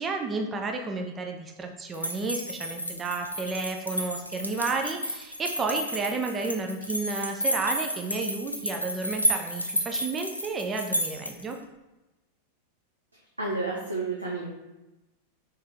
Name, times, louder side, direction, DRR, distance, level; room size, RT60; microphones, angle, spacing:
voice 1, 0.0-11.6, right 3 dB, 20° right, 3 dB, 0.4 m, -31 dB
sound 1, 1.9-11.5, equal, 85° left, 0.4 m, -31 dB
voice 2, 13.4-14.5, right 3 dB, 85° right, -3 dB, 0.5 m, -30 dB
3.2 x 3.2 x 3.0 m, 1.0 s
figure-of-eight pair, 90°, 0 cm